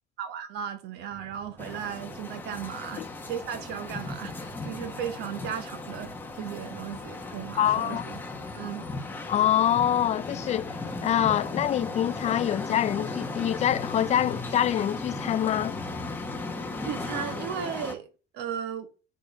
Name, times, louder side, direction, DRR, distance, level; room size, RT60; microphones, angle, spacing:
voice 1, 0.2-8.2 8.5-8.9 16.8-18.1 18.3-18.9, right 8 dB, 75° right, 1.6 m, -36 dB
sound 1, 1.1-17.3, right 7 dB, 40° right, 1.1 m, -53 dB
sound 2, 1.6-17.9, left 3 dB, 10° left, 1.5 m, -36 dB
voice 2, 7.6-8.0 9.3-15.7, left 11 dB, 40° left, 0.4 m, -25 dB
7.2 x 6.3 x 5.5 m
cardioid pair, 150°, 17 cm